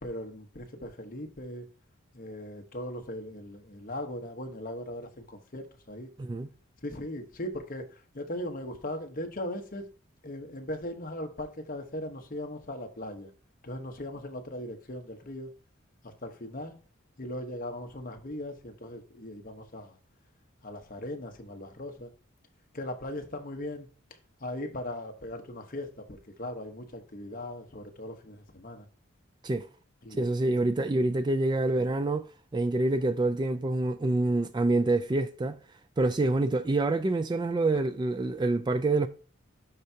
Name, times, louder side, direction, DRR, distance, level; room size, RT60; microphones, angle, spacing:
voice 1, 0.0-1.7 2.1-6.1 6.8-9.9 10.2-13.3 13.6-15.5 16.0-16.8 17.2-20.0 20.6-22.1 22.7-23.9 24.4-28.9 30.0-30.2 37.7-37.8, left 1 dB, 45° left, 1.1 m, -39 dB
voice 2, 30.1-35.6 36.0-39.1, right 2 dB, 20° right, 0.3 m, -27 dB
11.5 x 4.6 x 2.8 m
head